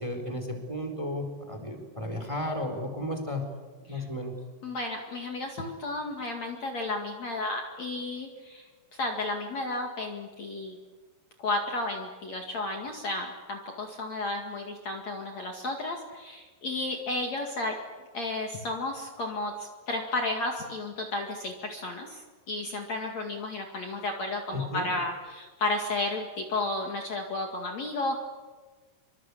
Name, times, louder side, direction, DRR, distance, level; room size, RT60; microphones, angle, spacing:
voice 1, 0.0-3.4 3.9-4.4 24.5-24.9, left 1 dB, 5° right, 5 dB, 4.0 m, -33 dB
voice 2, 4.6-8.6 9.0-10.8 11.4-17.8 18.1-22.2 22.5-28.2, left 2 dB, 45° left, 2 dB, 3.1 m, -33 dB
26.5 x 25.5 x 8.5 m, 1.4 s
omnidirectional pair, 4.7 m